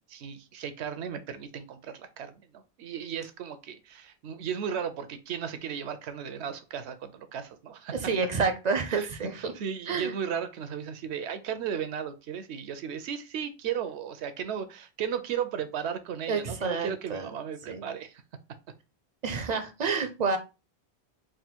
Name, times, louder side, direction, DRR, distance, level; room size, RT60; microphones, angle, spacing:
voice 1, 0.0-8.0 8.9-9.1 9.3-18.2, right 8 dB, 85° right, 0.9 m, -35 dB
voice 2, 7.9-9.5 9.9-10.1 16.3-17.3 17.7-17.8 19.2-20.4, right 5 dB, 50° right, 0.5 m, -29 dB
3.6 x 2.2 x 4.3 m
omnidirectional pair, 1.1 m